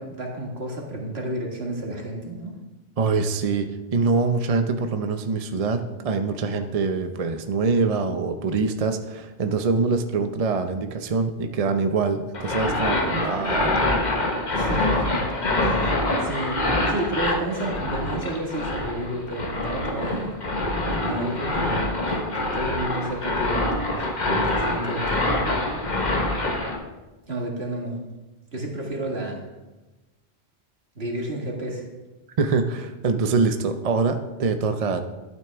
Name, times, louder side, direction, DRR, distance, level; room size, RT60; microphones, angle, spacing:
voice 1, 0.0-2.6 14.5-16.6 16.9-20.3 21.0-21.8 22.1-25.4 27.3-28.0 28.5-29.4 31.0-31.8, right 1 dB, 70° right, -1 dB, 2.2 m, -31 dB
voice 2, 3.0-13.8 32.4-35.0, right 4 dB, 40° right, 7 dB, 0.6 m, -24 dB
sound 1, 12.3-26.8, left 2 dB, 45° left, 1.4 m, -25 dB
12.0 x 9.1 x 3.5 m, 1.1 s
omnidirectional pair, 1.1 m